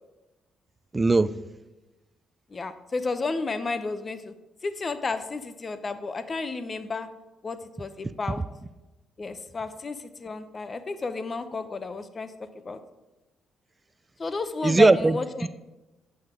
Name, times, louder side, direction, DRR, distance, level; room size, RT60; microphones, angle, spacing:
voice 1, 0.9-1.3 14.6-15.5, right 3 dB, 20° right, 16 dB, 0.4 m, -20 dB
voice 2, 2.5-4.3 4.6-7.1 7.4-8.4 9.2-12.8 14.2-15.5, left 3 dB, 35° left, 11 dB, 0.7 m, -32 dB
10.5 x 7.8 x 3.7 m, 1.0 s
cardioid pair, 90°, 0 cm